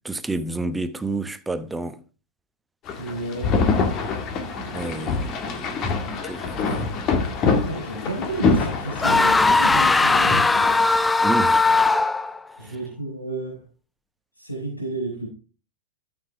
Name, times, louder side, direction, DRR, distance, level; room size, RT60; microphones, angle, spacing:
voice 1, 0.0-2.0 4.7-5.9 6.2-6.6 11.2-11.7, right 2 dB, 5° right, 0.9 m, -29 dB
sound 1, 2.9-10.8, left 4 dB, 30° left, 1.8 m, -25 dB
voice 2, 3.0-3.6 4.6-5.2 6.6-6.9 7.4-11.1 12.6-13.7 14.4-15.3, right 1 dB, 85° left, 4.2 m, -32 dB
sound 2, 9.0-12.4, left 3 dB, 10° left, 0.4 m, -18 dB
13.0 x 7.1 x 3.5 m
figure-of-eight pair, 95°, 0 cm